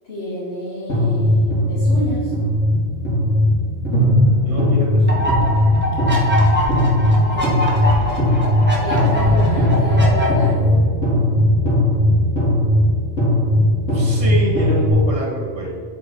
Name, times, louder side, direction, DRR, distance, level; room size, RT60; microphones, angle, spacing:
voice 1, 0.0-2.3 7.2-7.7 8.8-10.8, equal, 55° left, -8 dB, 2.2 m, -29 dB
sound 1, 0.9-14.9, left 1 dB, 85° left, 2.6 m, -17 dB
voice 2, 4.4-5.7 6.1-6.2 8.0-8.1 13.9-15.7, right 1 dB, 60° right, -3 dB, 1.9 m, -26 dB
sound 2, 5.1-10.3, equal, 10° right, 1.9 m, -23 dB
8.3 x 5.4 x 4.7 m, 2.2 s
omnidirectional pair, 1.3 m